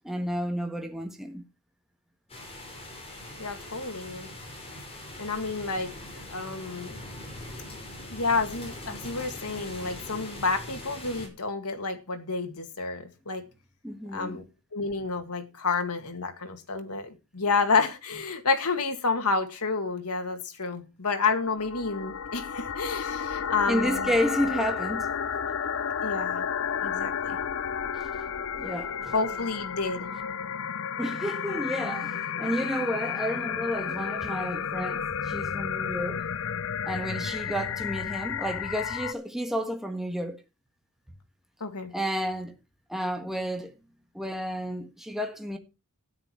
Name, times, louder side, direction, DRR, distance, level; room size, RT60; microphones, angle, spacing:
voice 1, 0.0-1.4 13.8-14.4 23.7-25.1 27.9-28.1 28.6-29.1 31.0-36.2 36.8-40.4 41.9-42.5 42.9-43.7 44.1-45.6, equal, ahead, 1.5 m, -31 dB
sound 1, 2.3-11.3, left 1 dB, 25° left, 5.4 m, -42 dB
voice 2, 3.4-4.3 5.2-5.9 6.3-7.0 8.1-13.4 14.1-14.4 14.7-24.1 26.0-26.5 26.8-27.4 29.1-30.1 41.6-41.9, left 4 dB, 85° left, 2.1 m, -29 dB
sound 2, 21.3-39.1, left 7 dB, 60° left, 0.7 m, -32 dB
13.0 x 10.5 x 4.6 m
head